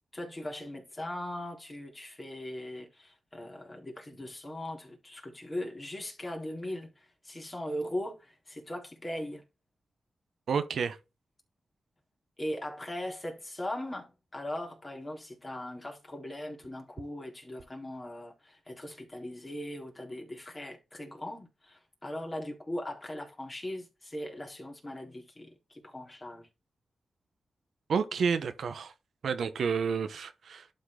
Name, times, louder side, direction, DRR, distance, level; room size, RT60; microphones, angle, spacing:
voice 1, 0.1-9.4 12.4-26.5, left 1 dB, 25° left, 3.6 m, -39 dB
voice 2, 10.5-11.0 27.9-28.9 29.2-30.7, right 6 dB, 80° right, 1.0 m, -30 dB
11.5 x 4.4 x 3.7 m
cardioid pair, 75°, 0 cm